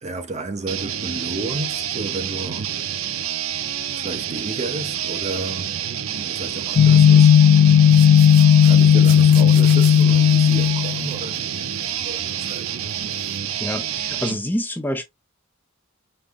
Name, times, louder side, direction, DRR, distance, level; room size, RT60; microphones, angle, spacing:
voice 1, 0.0-2.7 3.9-5.8 6.1-7.4 8.6-12.7, right 2 dB, 35° right, 0.7 m, -32 dB
sound 1, 0.7-14.4, right 9 dB, 80° right, 0.5 m, -28 dB
sound 2, 6.8-11.1, left 8 dB, 70° left, 0.3 m, -13 dB
sound 3, 7.9-12.0 12.3-13.4, right 6 dB, 60° right, 1.5 m, -41 dB
voice 2, 13.6-15.0, left 1 dB, 10° left, 0.5 m, -27 dB
5.4 x 2.0 x 3.5 m
head